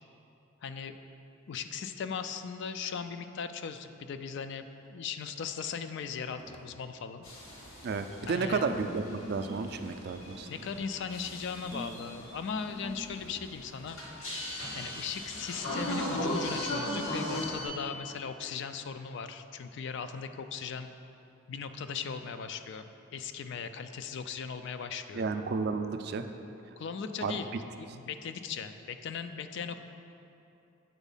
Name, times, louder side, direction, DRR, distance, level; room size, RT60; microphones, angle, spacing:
voice 1, 0.6-1.0 1.5-7.3 8.3-8.7 10.5-14.0 14.7-20.9 21.5-25.3 26.8-29.8, left 6 dB, 60° left, 9 dB, 0.3 m, -38 dB
sound 1, 6.3-6.8 8.6-10.0 11.7-13.5, equal, 25° left, 0.7 m, -46 dB
sound 2, 7.2-17.6, left 1 dB, 90° left, 1.5 m, -38 dB
voice 2, 7.8-10.5 25.1-26.2 27.2-27.4, right 4 dB, 50° right, 8 dB, 0.4 m, -32 dB
8.1 x 4.0 x 5.4 m, 2.7 s
head